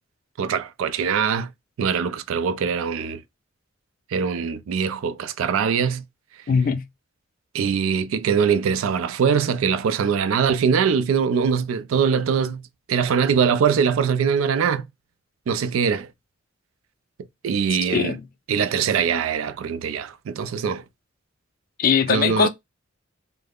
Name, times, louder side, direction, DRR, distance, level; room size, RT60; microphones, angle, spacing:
voice 1, 0.4-1.5 1.8-3.2 4.1-6.0 7.5-12.6 12.9-14.9 15.5-16.1 17.4-18.2 18.5-20.8 22.1-22.5, right 6 dB, 85° right, 0.3 m, -22 dB
voice 2, 6.5-6.8 17.9-18.2 21.8-22.5, left 6 dB, 45° left, 0.4 m, -20 dB
2.3 x 2.0 x 3.4 m
head